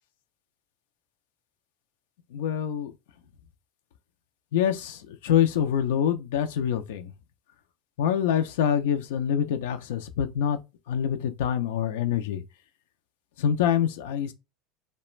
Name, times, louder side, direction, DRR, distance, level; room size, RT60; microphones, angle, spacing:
voice 1, 2.3-2.9 4.5-7.1 8.0-10.6 10.9-12.4 13.4-14.3, left 9 dB, 85° left, 0.4 m, -25 dB
2.4 x 2.1 x 3.0 m
supercardioid pair, 125°, 0 cm